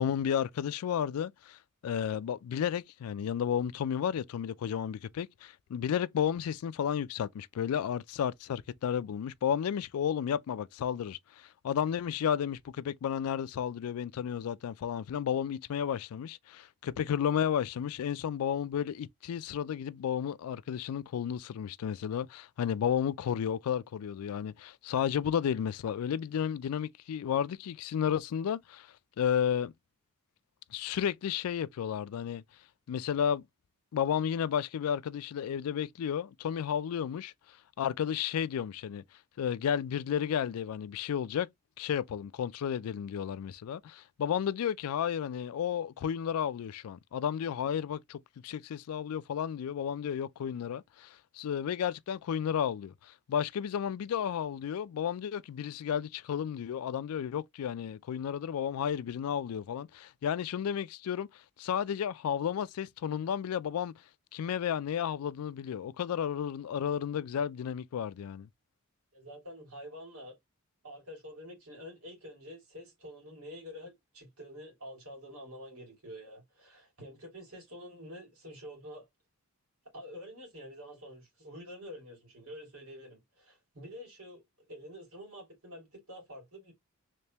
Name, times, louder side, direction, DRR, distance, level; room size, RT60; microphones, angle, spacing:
voice 1, 0.0-29.7 30.7-32.4 32.9-33.4 33.9-39.0 39.4-41.5 41.8-63.9 64.3-68.5, left 8 dB, 85° left, 0.3 m, -32 dB
voice 2, 69.1-70.4 70.8-79.1 79.9-84.4 84.7-86.7, equal, 85° right, 2.3 m, -47 dB
3.4 x 3.2 x 2.8 m
head